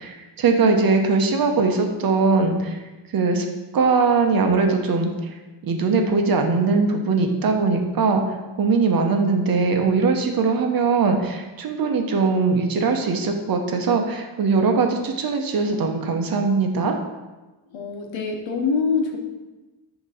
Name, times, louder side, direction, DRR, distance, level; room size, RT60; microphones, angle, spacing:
voice 1, 0.0-2.8 3.1-3.5 3.7-5.1 5.6-8.2 8.6-16.9, right 4 dB, 50° right, 4 dB, 0.7 m, -20 dB
voice 2, 17.7-19.2, left 5 dB, 85° left, 2 dB, 1.0 m, -24 dB
6.6 x 2.9 x 4.9 m, 1.2 s
wide cardioid pair, 145°, 45 cm